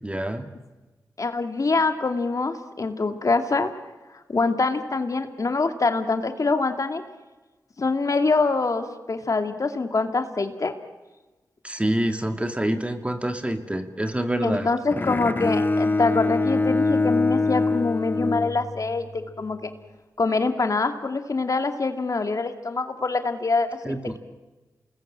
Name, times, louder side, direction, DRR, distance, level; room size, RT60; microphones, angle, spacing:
voice 1, 0.0-0.5 11.6-14.7 23.8-24.2, right 1 dB, 15° right, 7 dB, 2.5 m, -26 dB
voice 2, 1.2-3.7 4.3-7.0 7.8-10.7 14.4-19.7 20.2-24.2, left 3 dB, 55° left, 7 dB, 2.4 m, -25 dB
Bowed string instrument, 14.9-19.1, left 3 dB, 30° left, 0.9 m, -24 dB
28.0 x 19.5 x 8.9 m, 1.2 s
cardioid pair, 55°, 7 cm